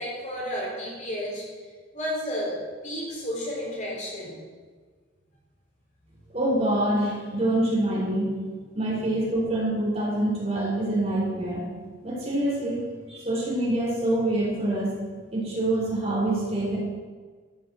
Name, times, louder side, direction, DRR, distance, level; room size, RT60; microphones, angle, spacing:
voice 1, 0.0-1.4 1.9-4.4, equal, 40° left, -4 dB, 4.3 m, -32 dB
voice 2, 6.3-8.3 8.7-11.6 12.0-15.0 15.3-16.8, right 1 dB, 35° right, -4 dB, 4.2 m, -26 dB
13.0 x 7.5 x 7.7 m, 1.5 s
head